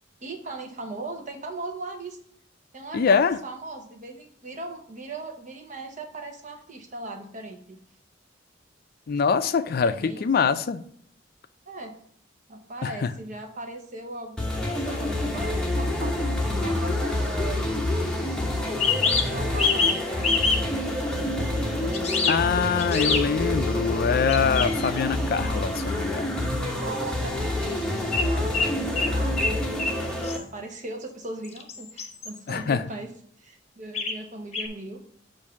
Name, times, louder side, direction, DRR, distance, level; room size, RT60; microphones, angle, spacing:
voice 1, 0.2-2.2 2.7-7.8 9.8-10.3 11.7-12.0 12.5-17.7 19.0-22.3 26.8-33.1 33.4-35.0, right 2 dB, 45° right, 4 dB, 0.9 m, -38 dB
voice 2, 2.9-3.4 9.1-10.8 12.8-13.1 22.3-26.4 32.5-32.8, left 6 dB, 55° left, 12 dB, 0.4 m, -24 dB
sound 1, 14.4-30.4, left 1 dB, 5° left, 0.9 m, -27 dB
sound 2, 16.5-16.6 18.7-20.0 20.2-20.6 21.9-22.4 22.8-23.2 24.3-25.0 28.1-28.3 28.5-29.5 29.8-30.0 30.2-30.4 31.4-32.5 33.9-34.2 34.5-34.7, left 4 dB, 35° left, 0.8 m, -25 dB
7.1 x 2.6 x 5.7 m, 0.65 s
head